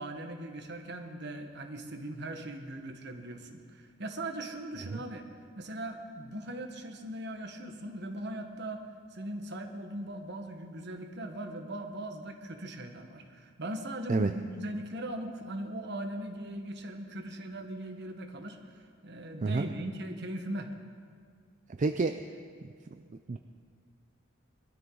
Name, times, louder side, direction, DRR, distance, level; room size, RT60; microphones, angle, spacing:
voice 1, 0.0-5.2 5.6-18.6 19.0-20.7, right 1 dB, 60° right, 5 dB, 1.4 m, -39 dB
voice 2, 21.8-22.2 23.3-23.4, right 3 dB, 40° right, 8 dB, 0.4 m, -28 dB
21.0 x 13.0 x 4.0 m, 2.1 s
head